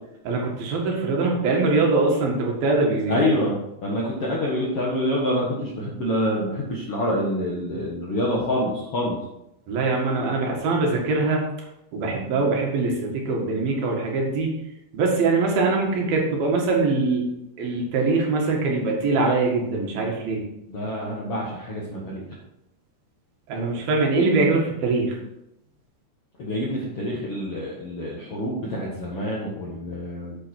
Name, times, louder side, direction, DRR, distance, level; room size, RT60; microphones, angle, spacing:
voice 1, 0.3-3.3 9.7-11.4 11.9-14.5 14.9-17.3 17.6-20.4 23.5-25.2, right 3 dB, 60° right, 0 dB, 3.4 m, -22 dB
voice 2, 3.1-9.2 20.7-22.3 26.4-30.4, left 1 dB, 65° left, -4 dB, 1.4 m, -26 dB
9.0 x 7.7 x 4.5 m, 0.86 s
omnidirectional pair, 5.2 m